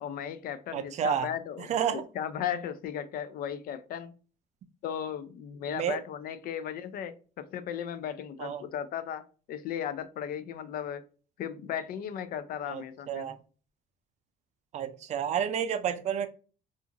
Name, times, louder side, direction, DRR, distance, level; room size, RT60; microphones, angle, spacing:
voice 1, 0.0-4.1 4.8-9.2 9.5-11.0 11.4-13.3, left 9 dB, 60° left, 0.4 m, -36 dB
voice 2, 0.7-1.3 1.7-2.0 5.7-6.0 8.4-8.6 12.7-13.3 14.7-16.3, right 8 dB, 45° right, 0.4 m, -30 dB
2.5 x 2.4 x 2.7 m
cardioid pair, 110°, 17 cm